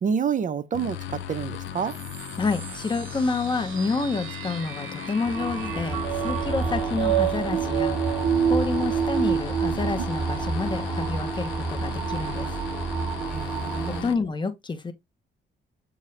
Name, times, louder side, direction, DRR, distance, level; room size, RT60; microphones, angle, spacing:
voice 1, 0.0-2.0 13.3-14.2, right 7 dB, 40° right, 0.5 m, -28 dB
sound 1, 0.7-14.1, left 11 dB, 70° left, 0.6 m, -37 dB
sound 2, 1.9-10.0, right 9 dB, 90° right, 0.5 m, -29 dB
voice 2, 2.4-8.1 8.4-12.5 13.9-14.9, left 4 dB, 25° left, 0.9 m, -29 dB
sound 3, 5.2-14.0, right 4 dB, 5° right, 1.9 m, -30 dB
6.8 x 2.4 x 3.2 m
cardioid pair, 90°, 20 cm